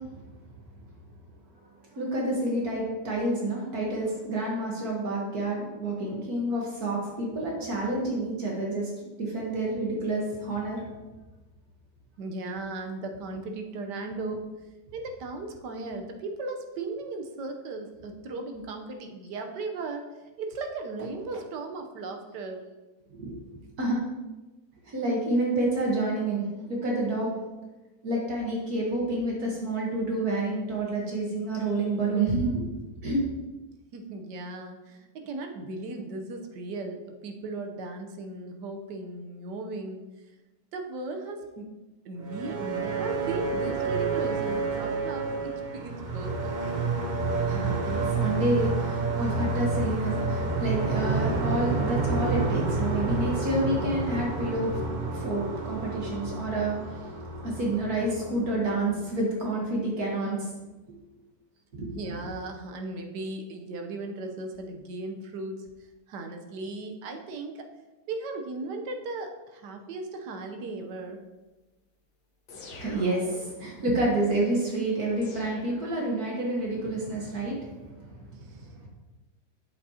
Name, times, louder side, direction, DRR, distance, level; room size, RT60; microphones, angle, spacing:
voice 1, 1.9-8.9 9.2-10.8 23.1-24.0 24.9-27.3 28.0-33.2 47.5-54.8 55.1-57.1 57.4-60.5 61.7-62.2 72.7-77.9, right 2 dB, 65° right, -2 dB, 1.8 m, -29 dB
voice 2, 12.2-14.5 14.9-20.0 20.4-22.6 33.9-40.0 40.7-41.7 42.0-46.5 61.9-65.7 66.1-67.7 68.1-71.2 78.5-78.7, right 3 dB, 80° right, 4 dB, 1.5 m, -37 dB
sound 1, 42.2-59.1, right 3 dB, 50° right, 0.5 m, -29 dB
sound 2, 72.5-73.7 75.2-76.5, left 3 dB, 75° left, 1.6 m, -47 dB
8.2 x 7.6 x 2.8 m, 1.1 s
omnidirectional pair, 1.8 m